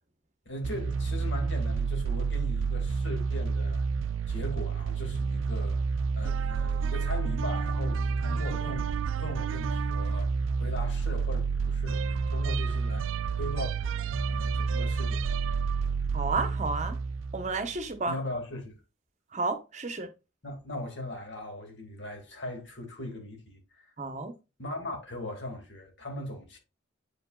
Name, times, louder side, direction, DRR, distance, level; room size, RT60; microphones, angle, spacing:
voice 1, 0.5-3.9 4.3-5.8 6.2-13.9 14.3-15.2 18.1-18.8 20.4-23.9 24.6-26.6, left 1 dB, 65° left, 2.3 m, -39 dB
sound 1, 0.6-17.9, right 5 dB, 85° right, 0.4 m, -29 dB
voice 2, 16.1-17.0 17.3-18.2 19.3-20.1 24.0-24.3, right 3 dB, 35° right, 1.0 m, -31 dB
7.8 x 5.1 x 2.3 m
head